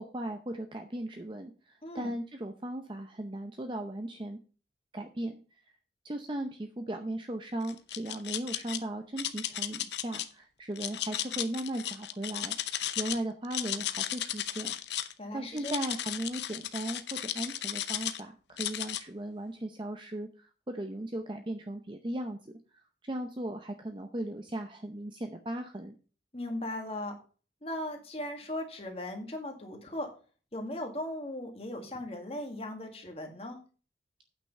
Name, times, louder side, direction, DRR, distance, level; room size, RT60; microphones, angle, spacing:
voice 1, 0.0-4.4 4.9-5.4 6.0-12.6 13.0-14.7 15.3-22.5 23.0-25.9, right 1 dB, 25° right, 6 dB, 0.7 m, -37 dB
sound 1, 7.6-8.8 9.2-10.3 10.8-13.2 13.4-15.1 15.6-18.2 18.6-19.0, left 12 dB, 75° left, 0.7 m, -35 dB
voice 2, 15.2-15.7 26.3-27.2 27.6-30.1 30.5-33.6, left 1 dB, 35° left, 3 dB, 1.9 m, -38 dB
8.8 x 6.0 x 5.4 m, 0.37 s
head